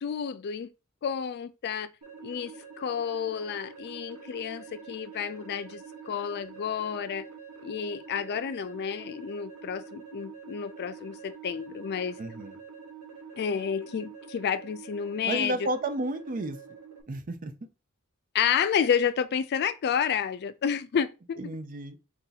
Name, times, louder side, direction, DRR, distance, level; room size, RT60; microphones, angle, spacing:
voice 1, 0.0-0.7 1.0-1.9 2.2-7.2 7.6-12.2 13.4-15.6 18.3-21.4, left 7 dB, 50° left, 0.3 m, -30 dB
sound 1, 2.0-17.0, right 6 dB, 70° right, 1.1 m, -46 dB
voice 2, 12.2-12.6 15.2-16.6 17.1-17.5 21.4-22.0, right 1 dB, 40° right, 0.5 m, -32 dB
4.6 x 2.7 x 3.9 m
head